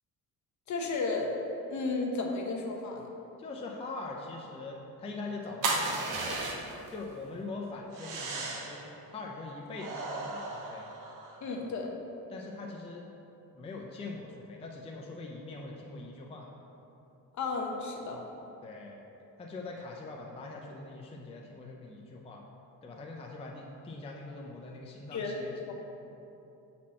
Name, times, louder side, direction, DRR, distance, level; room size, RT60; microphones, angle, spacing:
voice 1, 0.7-1.3 1.7-3.1 11.4-11.9 17.4-18.2 25.1-25.7, left 3 dB, 50° left, 1 dB, 0.9 m, -33 dB
voice 2, 3.4-6.4 6.9-10.9 12.3-13.0 13.5-16.5 18.6-19.0 19.4-22.4 22.8-25.5, left 3 dB, 15° left, -1 dB, 0.4 m, -42 dB
sound 1, 5.6-6.9 7.9-8.8 9.7-11.4, right 3 dB, 60° right, 0.9 m, -35 dB
7.4 x 4.3 x 4.2 m, 2.9 s
cardioid pair, 140°, 36 cm